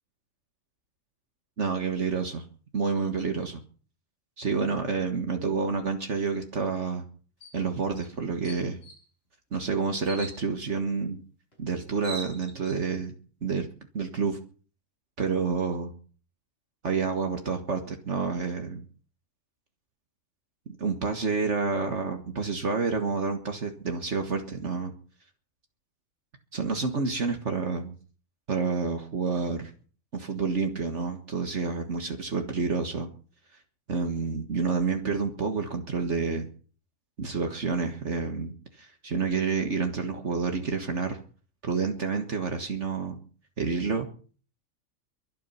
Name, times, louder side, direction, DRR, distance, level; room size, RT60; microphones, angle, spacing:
voice 1, 1.6-2.4 2.7-3.6 4.4-7.0 7.5-8.8 9.5-11.2 11.6-13.1 13.4-13.7 13.9-14.4 15.2-15.9 16.8-18.8 20.7-24.9 26.5-27.9 28.5-29.7 30.1-33.1 33.9-36.5 37.2-41.2 41.6-43.2 43.6-44.1, right 4 dB, 60° right, 5 dB, 1.9 m, -29 dB
sound 1, 7.4-7.6 8.0-8.1 8.4-9.0 10.0-10.4 11.5-11.6 11.9-12.8, right 3 dB, 45° left, 6.7 m, -41 dB
23.0 x 8.9 x 5.7 m, 0.41 s
omnidirectional pair, 1.4 m